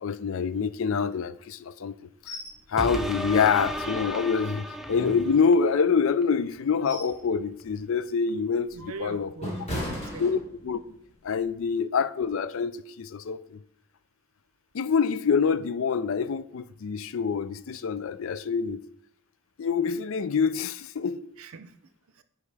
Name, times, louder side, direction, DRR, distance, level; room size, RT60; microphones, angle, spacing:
voice 1, 0.0-2.4 2.7-9.3 10.2-10.4 10.6-11.0 11.2-13.6 14.7-18.8 19.6-21.2, left 6 dB, 60° left, 0.4 m, -26 dB
sound 1, 2.3-2.6 2.9-3.0 3.5-4.3 4.8-5.9 6.4-7.2 7.6-7.9 8.4-10.9 11.3-11.5, left 1 dB, 30° left, 1.8 m, -38 dB
sound 2, 2.8-5.7 6.2-6.3, equal, ahead, 0.4 m, -33 dB
voice 2, 8.7-10.2 21.4-21.8 22.1-22.2, right 4 dB, 70° right, 0.6 m, -41 dB
9.7 x 4.8 x 3.4 m
head